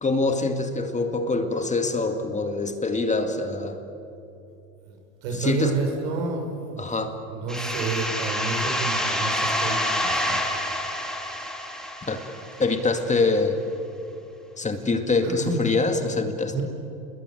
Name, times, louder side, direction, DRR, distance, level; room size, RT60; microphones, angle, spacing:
voice 1, 0.0-3.8 5.3-5.8 6.8-7.1 12.1-12.2 12.6-13.6 14.6-16.6, left 3 dB, 15° left, 6 dB, 2.2 m, -24 dB
voice 2, 5.2-6.8 7.3-10.4 15.2-15.6 16.4-16.6, right 4 dB, 75° right, 3 dB, 6.8 m, -29 dB
sound 1, 7.5-13.0, left 1 dB, ahead, 3.1 m, -27 dB
29.0 x 21.5 x 9.1 m, 2.9 s
supercardioid pair, 110°, 42 cm